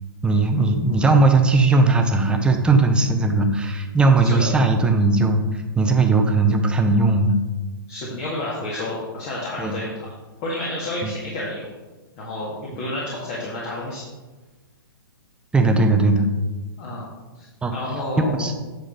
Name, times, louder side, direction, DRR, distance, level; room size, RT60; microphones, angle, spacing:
voice 1, 0.2-7.4 9.6-9.8 11.0-11.1 15.5-16.3 17.6-17.7 18.4-18.6, right 3 dB, 10° right, 5 dB, 0.8 m, -18 dB
voice 2, 7.9-10.1 10.4-11.7 12.2-14.0 16.8-17.0 17.3-18.5, left 1 dB, 40° left, -5 dB, 2.0 m, -30 dB
9.3 x 6.4 x 3.9 m, 1.2 s
figure-of-eight pair, 120°, 12 cm